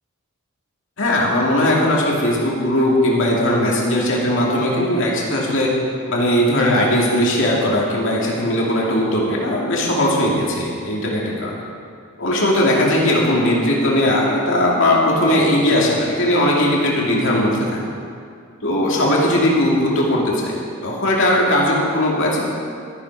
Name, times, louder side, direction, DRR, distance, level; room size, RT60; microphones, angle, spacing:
voice 1, 1.0-5.7 6.1-11.6 12.2-17.8 18.6-22.4, left 1 dB, 60° left, -3 dB, 2.6 m, -18 dB
13.0 x 11.5 x 4.9 m, 2.3 s
head